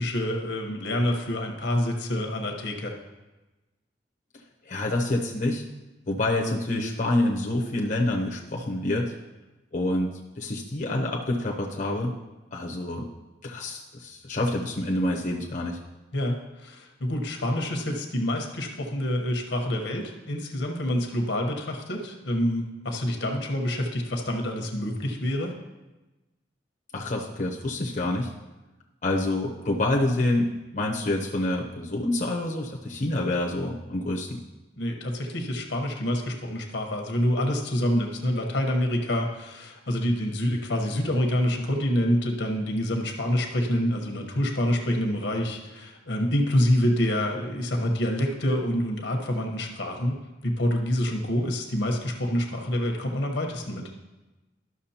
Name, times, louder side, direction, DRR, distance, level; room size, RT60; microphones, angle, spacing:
voice 1, 0.0-2.9 16.1-25.5 34.8-53.8, left 1 dB, 75° left, 2 dB, 1.1 m, -27 dB
voice 2, 4.7-5.6 6.1-9.1 9.7-12.2 12.5-13.1 13.4-15.8 26.9-28.3 29.0-34.4, left 1 dB, 45° left, -2 dB, 0.8 m, -27 dB
12.5 x 6.1 x 2.9 m, 1.1 s
head